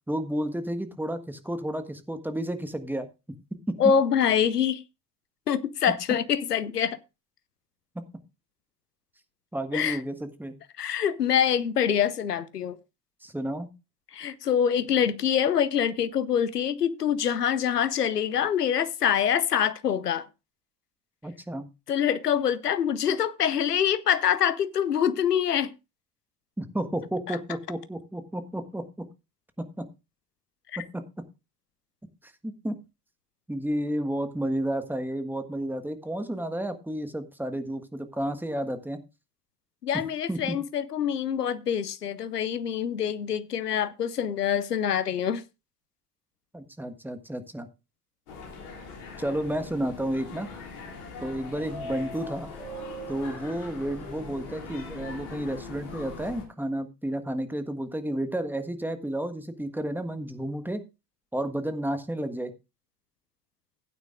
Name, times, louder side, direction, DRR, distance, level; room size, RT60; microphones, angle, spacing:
voice 1, 0.1-3.1 3.7-3.8 7.9-8.0 9.5-10.6 13.2-13.7 21.2-21.7 26.6-29.1 29.6-29.8 30.8-31.0 32.2-32.7 33.5-39.0 40.3-40.6 46.5-47.7 49.2-50.5 51.2-52.5 53.1-60.8 61.3-62.5, right 1 dB, 5° right, 1.5 m, -31 dB
voice 2, 3.8-4.8 5.5-7.0 9.7-10.0 10.8-12.8 14.1-20.3 21.9-25.7 30.7-30.8 39.8-45.4, left 8 dB, 85° left, 0.8 m, -25 dB
sound 1, 48.3-56.4, left 3 dB, 65° left, 3.3 m, -40 dB
16.0 x 9.2 x 2.4 m
figure-of-eight pair, 60°, 47 cm